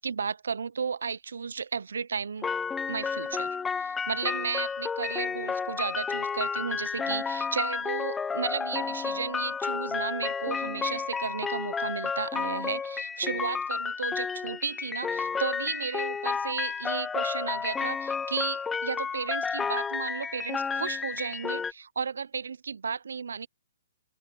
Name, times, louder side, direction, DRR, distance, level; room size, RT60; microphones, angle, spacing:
voice 1, 0.0-2.5 2.9-23.5, right 6 dB, 75° right, 0.9 m, -34 dB
sound 1, 2.4-21.7, left 5 dB, 10° left, 0.5 m, -31 dB
open air
hypercardioid pair, 130°, 0 cm